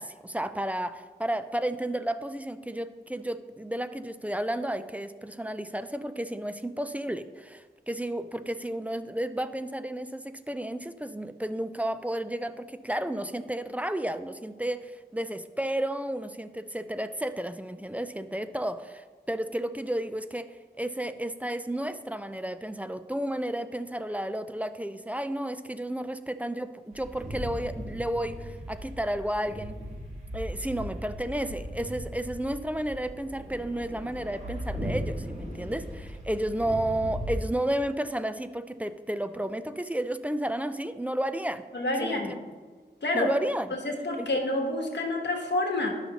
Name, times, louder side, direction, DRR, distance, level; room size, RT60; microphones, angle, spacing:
voice 1, 0.0-29.8 30.3-41.6 42.0-42.2 43.1-43.8 44.2-44.3, right 1 dB, 10° right, 11 dB, 0.3 m, -32 dB
sound 1, 26.9-37.4, equal, 40° right, 1.6 m, -38 dB
voice 2, 41.7-42.3 43.0-43.3 43.8-45.9, left 2 dB, 70° left, 2 dB, 1.2 m, -28 dB
11.5 x 5.7 x 2.9 m, 1.4 s
wide cardioid pair, 90°, 18 cm